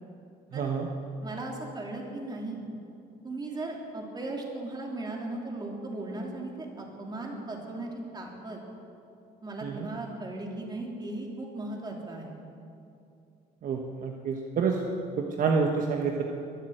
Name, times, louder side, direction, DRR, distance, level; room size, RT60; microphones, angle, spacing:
voice 1, 0.5-0.9 9.6-9.8 13.6-14.8 15.2-16.2, right 5 dB, 55° right, 2 dB, 1.2 m, -28 dB
voice 2, 1.2-2.6 3.2-8.6 9.4-12.3, right 2 dB, 25° right, 0 dB, 3.0 m, -37 dB
22.5 x 7.6 x 7.9 m, 2.6 s
cardioid pair, 110°, 17 cm